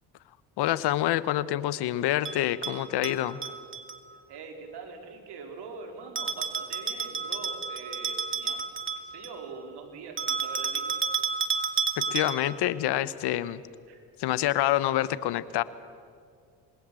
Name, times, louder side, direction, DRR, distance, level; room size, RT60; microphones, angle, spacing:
voice 1, 0.6-3.4 12.1-13.6 14.2-15.6, left 14 dB, 70° left, 16 dB, 1.2 m, -27 dB
Bell, 2.2-4.0 6.2-9.4 10.2-12.6, right 5 dB, 30° right, 2.4 m, -31 dB
voice 2, 4.3-8.6 9.0-10.9 13.9-14.0, right 4 dB, 70° right, 4 dB, 4.5 m, -43 dB
27.5 x 21.0 x 7.7 m, 2.2 s
supercardioid pair, 75°, 41 cm